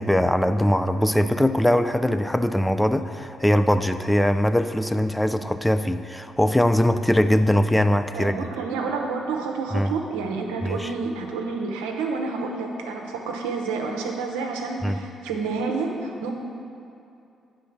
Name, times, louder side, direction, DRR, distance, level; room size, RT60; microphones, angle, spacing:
voice 1, 0.0-8.3 9.7-9.9 10.6-10.9 14.8-15.0, left 1 dB, 5° left, 10 dB, 0.4 m, -21 dB
voice 2, 8.1-16.3, right 4 dB, 85° right, 2 dB, 0.7 m, -29 dB
8.3 x 3.8 x 5.8 m, 2.6 s
hypercardioid pair, 50°, 0 cm